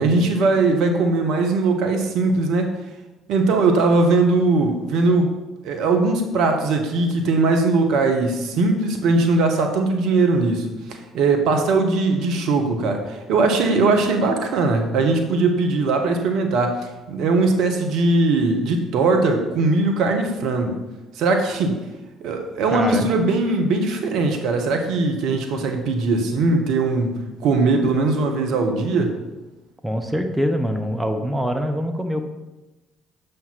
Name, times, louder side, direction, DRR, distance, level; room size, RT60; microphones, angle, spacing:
voice 1, 0.0-2.7 3.3-5.3 5.6-20.8 21.1-21.8 22.2-29.1, right 3 dB, 65° right, 4 dB, 0.9 m, -20 dB
voice 2, 22.7-23.1 29.8-32.2, equal, 10° right, 5 dB, 0.8 m, -24 dB
7.1 x 3.3 x 5.7 m, 1.1 s
hypercardioid pair, 50°, 0 cm